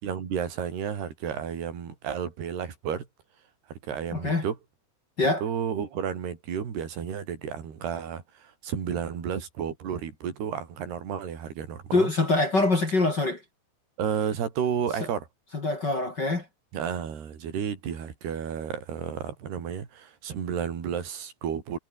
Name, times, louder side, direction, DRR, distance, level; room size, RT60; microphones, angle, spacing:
voice 1, 0.0-3.1 3.7-4.6 5.4-12.1 14.0-15.3 16.7-21.8, right 8 dB, 65° right, 5.7 m, -32 dB
voice 2, 4.1-4.4 5.2-5.4 11.9-13.4 15.5-16.5, left 2 dB, 30° left, 2.7 m, -24 dB
omnidirectional pair, 5.1 m